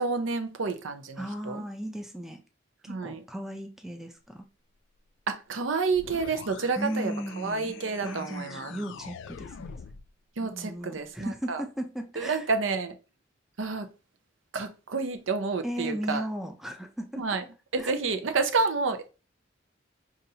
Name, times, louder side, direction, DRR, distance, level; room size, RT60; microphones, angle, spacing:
voice 1, 0.0-1.6 2.9-3.2 5.3-8.7 10.4-11.6 12.2-12.9 13.6-13.9 14.5-16.3 17.2-17.4 17.7-19.1, right 4 dB, 75° right, 0.6 m, -29 dB
voice 2, 1.2-2.4 2.9-4.4 6.8-9.7 10.4-12.4 15.6-17.3 17.8-17.9, equal, ahead, 0.4 m, -36 dB
sound 1, 5.9-10.1, left 6 dB, 65° left, 0.3 m, -44 dB
5.4 x 2.5 x 2.7 m
head